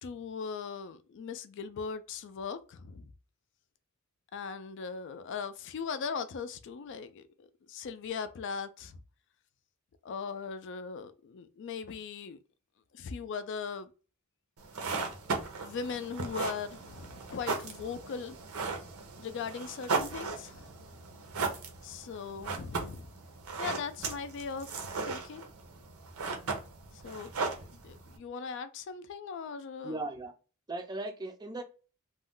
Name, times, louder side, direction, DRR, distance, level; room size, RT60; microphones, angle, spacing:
voice 1, 0.0-3.1 4.3-9.0 10.0-12.4 12.9-13.9 15.6-18.4 19.2-20.7 21.8-23.1 23.6-25.4 26.9-30.0, left 5 dB, 55° left, 0.3 m, -39 dB
sound 1, 14.6-28.2, right 4 dB, 80° right, 0.7 m, -37 dB
voice 2, 29.8-30.3 30.7-31.6, right 2 dB, 20° right, 0.4 m, -37 dB
2.4 x 2.2 x 3.6 m
head